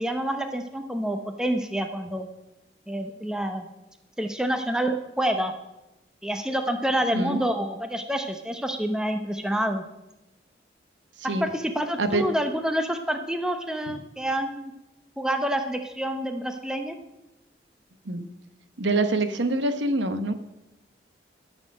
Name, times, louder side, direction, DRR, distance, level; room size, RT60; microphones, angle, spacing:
voice 1, 0.0-2.3 2.9-3.7 4.2-5.5 6.2-9.8 11.2-14.7 15.2-17.0, right 1 dB, 5° right, 6 dB, 0.8 m, -28 dB
voice 2, 7.1-7.4 11.2-11.4 12.0-12.3 13.9-14.0 18.0-18.3 18.8-20.3, right 2 dB, 85° right, 9 dB, 1.0 m, -25 dB
13.0 x 6.5 x 7.6 m, 0.95 s
head